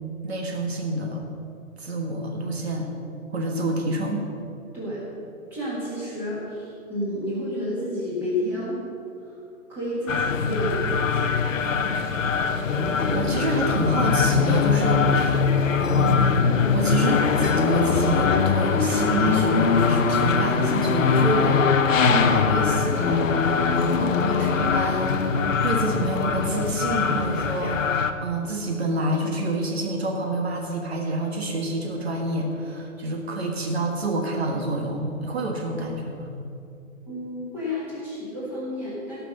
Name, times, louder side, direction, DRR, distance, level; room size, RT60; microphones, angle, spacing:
voice 1, 0.2-1.2 1.8-2.9 3.3-4.2 12.6-16.4 16.7-25.4 25.6-36.4, right 2 dB, 45° right, 1 dB, 1.6 m, -28 dB
voice 2, 5.5-8.8 9.2-9.4 9.7-11.3 37.0-39.2, left 1 dB, 5° right, -9 dB, 1.7 m, -30 dB
sound 1, 10.1-28.1, left 5 dB, 65° left, 1.0 m, -22 dB
17.0 x 6.0 x 6.5 m, 2.6 s
hypercardioid pair, 180°, 42 cm